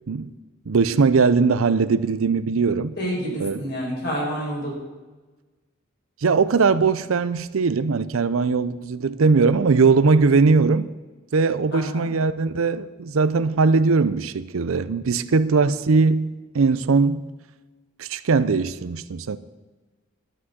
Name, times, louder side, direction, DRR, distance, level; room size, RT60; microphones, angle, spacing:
voice 1, 0.7-2.9 3.4-3.6 6.2-10.9 11.3-16.3 16.5-17.2 18.0-19.4, right 4 dB, 75° right, 0.5 m, -20 dB
voice 2, 3.0-4.7 11.7-12.1, equal, 55° left, 4.8 m, -28 dB
12.0 x 6.1 x 8.0 m
head